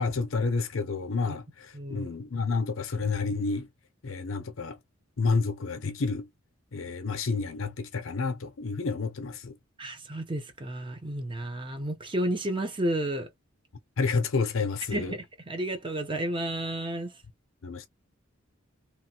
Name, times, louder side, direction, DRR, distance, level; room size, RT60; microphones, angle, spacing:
voice 1, 0.0-1.4 1.9-3.7 4.0-4.8 5.2-6.3 6.7-9.5 14.0-15.1 17.6-17.9, left 4 dB, 75° left, 0.7 m, -29 dB
voice 2, 1.7-2.1 9.8-13.3 14.9-17.1, right 1 dB, 25° right, 0.8 m, -32 dB
3.0 x 2.4 x 2.8 m
head